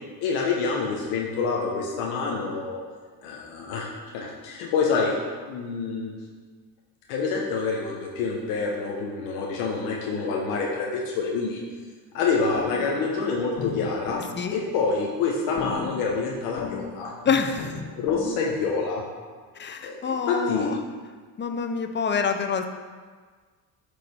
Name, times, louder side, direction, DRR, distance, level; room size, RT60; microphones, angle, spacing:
voice 1, 0.2-2.8 3.2-3.9 4.1-5.2 5.5-6.1 7.1-11.6 12.1-14.2 14.5-17.1 18.0-19.0 19.8-20.7, left 4 dB, 85° left, -2 dB, 1.1 m, -27 dB
sound 1, 12.3-18.3, left 5 dB, 45° left, 0.9 m, -38 dB
voice 2, 17.2-17.8 19.5-20.8 21.4-22.7, left 6 dB, 25° left, 6 dB, 0.5 m, -26 dB
8.2 x 3.3 x 4.2 m, 1.5 s
supercardioid pair, 85°, 48 cm